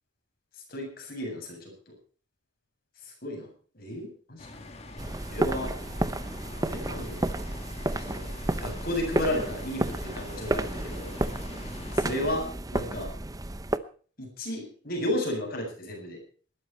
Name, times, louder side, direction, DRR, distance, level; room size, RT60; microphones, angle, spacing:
voice 1, 0.7-1.9 3.0-3.5 3.7-4.5 5.3-5.7 6.4-7.2 7.9-8.3 8.6-11.1 11.9-12.4 12.7-13.1 14.2-16.2, left 1 dB, 50° left, 1 dB, 7.9 m, -33 dB
sound 1, 4.4-12.1, left 2 dB, 30° left, 2.5 m, -44 dB
sound 2, 5.0-13.8, right 1 dB, 20° right, 0.7 m, -31 dB
19.5 x 13.0 x 4.4 m, 0.42 s
head